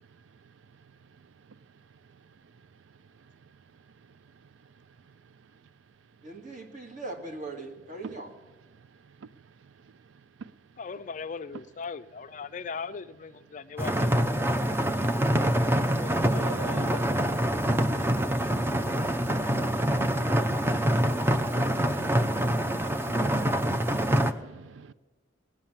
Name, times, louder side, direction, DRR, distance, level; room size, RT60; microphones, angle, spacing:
voice 1, 6.2-8.3, right 2 dB, 45° right, 2.0 m, -40 dB
voice 2, 10.8-14.1 15.7-17.0, left 5 dB, 40° left, 0.4 m, -39 dB
sound 1, 13.8-24.3, right 1 dB, 10° right, 0.6 m, -25 dB
voice 3, 16.4-17.1 18.8-18.9 19.9-20.1 20.3-20.7 21.0-23.3 23.8-23.9 24.6-24.9, right 5 dB, 80° right, 0.4 m, -44 dB
18.0 x 9.8 x 7.3 m
head